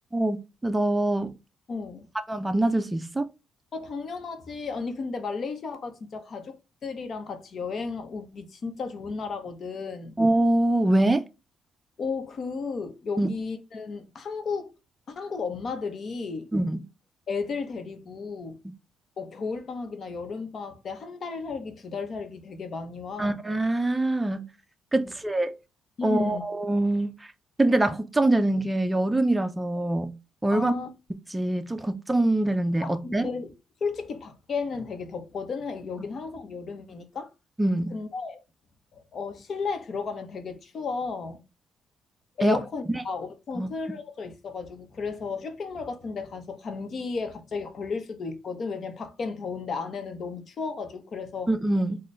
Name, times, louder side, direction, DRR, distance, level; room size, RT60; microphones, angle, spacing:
voice 1, 0.6-1.3 2.3-3.3 10.2-11.2 13.2-13.3 16.5-16.8 23.2-24.5 24.9-25.6 26.0-27.1 27.6-30.1 30.4-30.7 31.3-33.3 37.6-37.9 42.4-42.6 42.9-43.0 43.6-43.7 51.5-52.0, right 1 dB, 15° right, 0.5 m, -24 dB
voice 2, 1.7-2.1 3.7-10.2 12.0-14.7 15.1-16.5 17.3-18.6 19.2-23.5 24.9-25.1 26.0-26.4 30.5-30.9 32.8-33.5 33.8-37.3 37.9-38.4 38.9-41.4 42.4-51.5, left 4 dB, 50° left, 0.9 m, -34 dB
4.2 x 2.2 x 3.2 m
cardioid pair, 90°, 0 cm